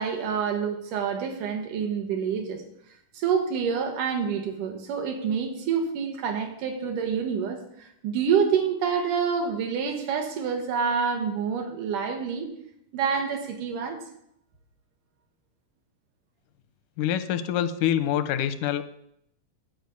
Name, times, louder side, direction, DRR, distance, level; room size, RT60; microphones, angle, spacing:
voice 1, 0.0-2.6 3.1-12.5 12.9-14.0, right 6 dB, 90° right, 4 dB, 3.0 m, -27 dB
voice 2, 17.0-18.8, left 10 dB, 90° left, 12 dB, 2.2 m, -25 dB
12.0 x 5.1 x 8.1 m, 0.75 s
omnidirectional pair, 3.6 m